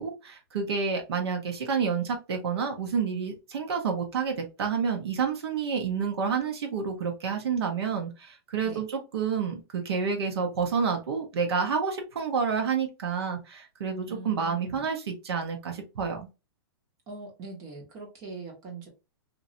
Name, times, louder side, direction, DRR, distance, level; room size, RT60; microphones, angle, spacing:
voice 1, 0.0-16.3, right 6 dB, 75° right, 3 dB, 1.0 m, -29 dB
voice 2, 14.1-14.9 17.1-18.9, right 3 dB, 25° right, -1 dB, 1.4 m, -42 dB
2.8 x 2.6 x 2.7 m, 0.28 s
hypercardioid pair, 155°, 13 cm